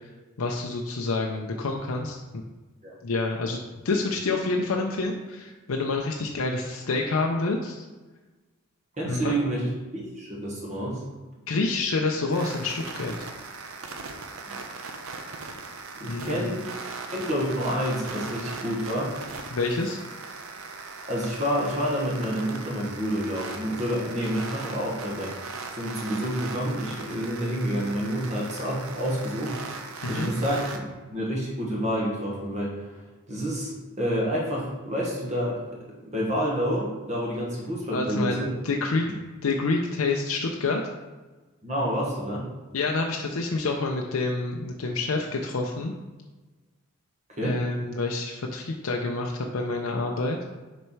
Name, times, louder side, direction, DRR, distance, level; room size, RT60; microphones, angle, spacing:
voice 1, 0.4-2.4 3.0-7.8 9.1-9.3 11.5-13.1 16.1-16.6 19.5-20.0 30.0-30.3 37.9-38.4 38.6-39.1 39.4-40.8 42.7-45.9 47.4-50.4, left 3 dB, 85° left, 1 dB, 0.6 m, -28 dB
voice 2, 9.0-9.6 9.9-11.0 14.5-14.6 16.0-16.7 17.1-19.1 21.1-29.6 30.1-32.7 33.3-35.8 36.0-38.5 41.6-42.4 47.3-47.6, equal, 35° right, -3 dB, 1.4 m, -28 dB
sound 1, 12.3-30.8, right 4 dB, 90° right, 0.7 m, -39 dB
6.4 x 4.2 x 4.6 m, 1.2 s
head